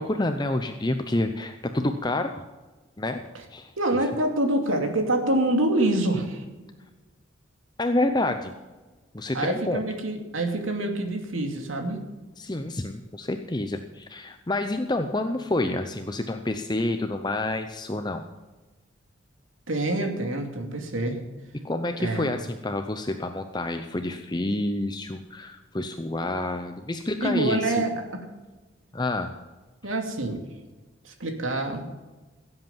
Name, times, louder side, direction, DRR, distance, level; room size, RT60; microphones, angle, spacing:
voice 1, 0.0-2.4 3.0-3.2 3.5-3.7 7.8-8.5 9.1-9.8 12.4-18.2 21.6-27.8 28.9-29.3, left 2 dB, 20° left, 7 dB, 0.6 m, -28 dB
voice 2, 3.8-6.4 9.3-12.0 19.7-21.2 22.0-22.3 27.2-28.2 29.8-30.4 31.0-31.9, right 1 dB, 85° right, 4 dB, 2.5 m, -26 dB
16.5 x 8.0 x 7.3 m, 1.2 s
head